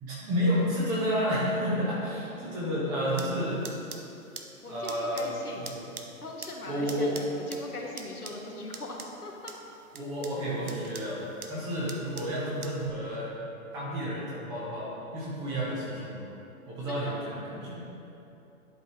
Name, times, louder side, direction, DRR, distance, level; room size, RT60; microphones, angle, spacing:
voice 1, 0.0-3.6 4.7-5.4 5.7-5.8 6.7-7.1 9.9-11.2 11.5-13.4 13.7-16.2 16.7-17.4 17.6-17.9, equal, 10° right, -6 dB, 0.5 m, -30 dB
sound 1, 3.1-12.9, right 5 dB, 80° right, 0.8 m, -46 dB
voice 2, 4.6-5.7 6.2-9.5 16.9-17.3, left 2 dB, 90° left, -1 dB, 1.2 m, -40 dB
11.0 x 5.3 x 2.8 m, 2.9 s
figure-of-eight pair, 120°, 44 cm